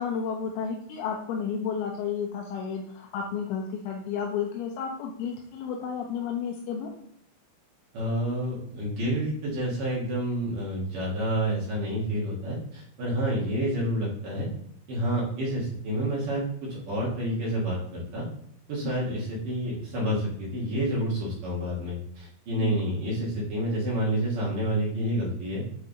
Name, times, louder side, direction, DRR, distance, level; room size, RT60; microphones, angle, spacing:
voice 1, 0.0-6.9 18.8-19.1 22.6-22.9, left 6 dB, 80° left, 0 dB, 2.7 m, -32 dB
voice 2, 7.9-14.5 14.9-18.3 18.7-25.6, right 1 dB, 60° right, -6 dB, 3.2 m, -29 dB
8.0 x 4.7 x 3.9 m, 0.68 s
omnidirectional pair, 4.6 m